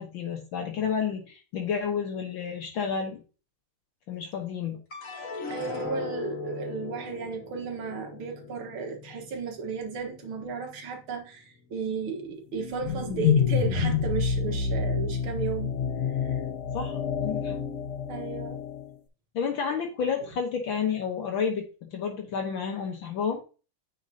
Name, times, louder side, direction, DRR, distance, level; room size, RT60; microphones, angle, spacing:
voice 1, 0.0-3.2 4.1-4.8 16.7-17.6 19.4-23.4, left 6 dB, 70° left, 1.8 m, -30 dB
sound 1, 4.9-11.3 11.8-12.5, left 2 dB, 40° left, 2.0 m, -39 dB
voice 2, 5.5-15.7 16.2-16.4 18.1-18.6, right 5 dB, 75° right, 2.3 m, -34 dB
sound 2, 12.6-18.9, left 6 dB, 85° left, 2.1 m, -28 dB
9.6 x 5.3 x 2.8 m
omnidirectional pair, 2.3 m